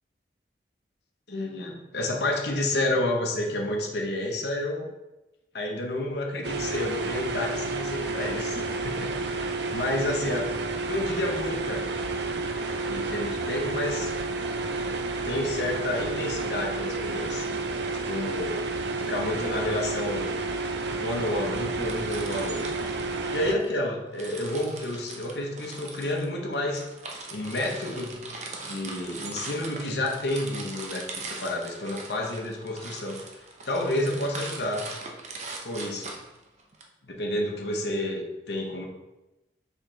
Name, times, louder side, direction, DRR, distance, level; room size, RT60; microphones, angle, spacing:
voice 1, 1.3-4.9 5.5-10.5 10.8-11.9 12.8-14.1 14.8-18.6 19.0-20.3 21.0-22.7 23.3-26.8 27.3-28.2 28.6-34.9 35.6-36.1 37.0-38.9, left 1 dB, 75° left, 0 dB, 1.1 m, -30 dB
sound 1, 6.4-23.6, right 3 dB, 80° right, 0.6 m, -30 dB
sound 2, 21.5-23.7 24.1-36.8, right 3 dB, 40° right, 0.8 m, -41 dB
6.4 x 5.1 x 3.3 m, 0.98 s
head